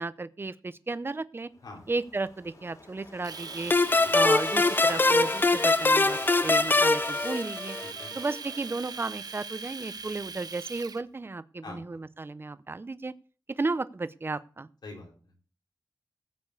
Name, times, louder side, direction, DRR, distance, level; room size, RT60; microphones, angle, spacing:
voice 1, 0.0-1.5 1.9-3.7 4.1-7.8 8.2-13.1 13.6-14.7, right 3 dB, 30° right, 15 dB, 0.7 m, -33 dB
Waves surf, 1.6-7.3, left 2 dB, 50° left, 3.9 m, -46 dB
Domestic sounds home sounds, 3.2-11.0, right 5 dB, 65° right, 0.7 m, -41 dB
sound 1, 3.7-8.1, left 3 dB, 25° left, 0.5 m, -23 dB
voice 2, 7.8-8.1 11.6-12.0 14.8-15.5, left 2 dB, 75° left, -1 dB, 4.7 m, -45 dB
15.0 x 5.2 x 8.3 m, 0.39 s
wide cardioid pair, 105°, 7 cm